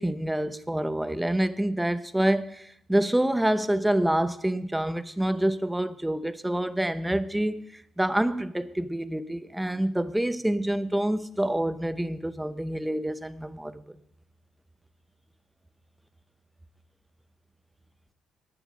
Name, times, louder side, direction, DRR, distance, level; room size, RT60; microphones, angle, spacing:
voice 1, 0.0-13.9, right 1 dB, 5° right, 0.7 m, -27 dB
11.5 x 9.0 x 6.4 m
cardioid pair, 90°, 0 cm